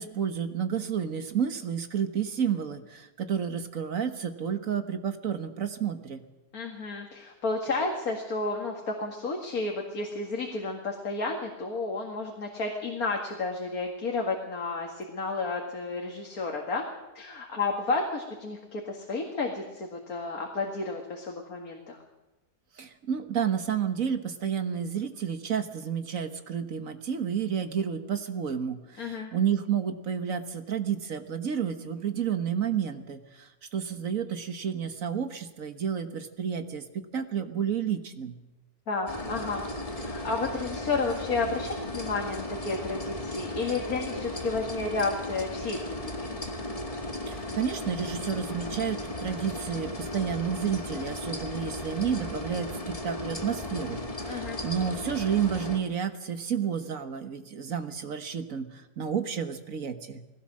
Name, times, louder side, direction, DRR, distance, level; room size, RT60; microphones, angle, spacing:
voice 1, 0.0-6.2 22.8-38.4 47.3-60.2, right 8 dB, 60° right, 8 dB, 1.7 m, -31 dB
voice 2, 6.5-16.8 17.1-22.0 29.0-29.3 38.9-39.7 40.0-46.3 54.3-54.6, left 3 dB, 65° left, 1 dB, 2.5 m, -32 dB
sound 1, 39.1-55.8, left 1 dB, 20° left, 2.1 m, -36 dB
20.0 x 17.0 x 7.6 m, 1.1 s
omnidirectional pair, 1.7 m